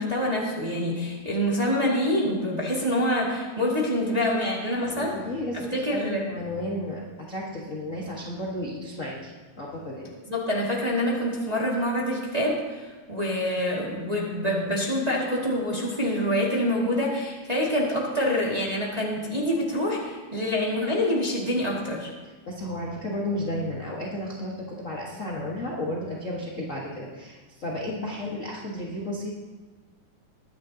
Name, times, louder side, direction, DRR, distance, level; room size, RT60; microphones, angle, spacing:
voice 1, 0.0-5.1 5.7-6.2 10.3-22.1, left 1 dB, 15° right, -5 dB, 1.7 m, -26 dB
voice 2, 4.8-10.1 22.5-29.3, left 1 dB, 40° left, -4 dB, 1.2 m, -33 dB
21.5 x 10.5 x 2.9 m, 1.4 s
omnidirectional pair, 3.6 m